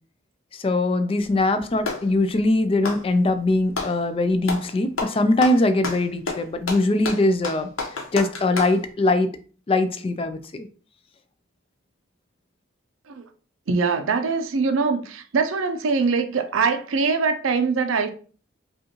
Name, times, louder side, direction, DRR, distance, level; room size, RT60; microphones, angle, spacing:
voice 1, 0.6-7.7 8.1-9.3 9.7-10.7, left 2 dB, 30° left, 0.3 m, -21 dB
Clapping, 1.2-2.1 2.7-4.0 4.4-4.7 5.0-8.8, left 3 dB, 85° left, 1.0 m, -30 dB
voice 2, 13.7-18.1, right 4 dB, 80° right, 0.5 m, -23 dB
5.1 x 2.4 x 2.9 m
head